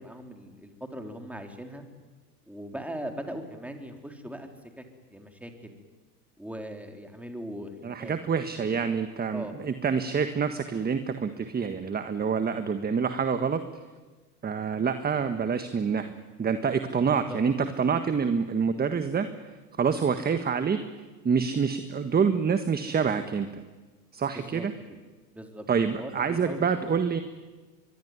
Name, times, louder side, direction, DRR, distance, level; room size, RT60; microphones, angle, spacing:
voice 1, 0.0-1.8 2.5-4.5 4.8-4.9 5.1-5.8 6.4-8.1 9.3-9.6 17.1-17.4 24.3-24.7 25.3-25.7 25.9-27.2, equal, 5° right, 4 dB, 3.9 m, -40 dB
voice 2, 7.8-13.6 14.4-16.1 16.4-19.3 19.8-20.8 21.2-23.6 24.1-24.7 25.7-27.2, right 6 dB, 20° right, 9 dB, 1.6 m, -27 dB
23.0 x 22.5 x 9.7 m, 1.3 s
hypercardioid pair, 100°, 49 cm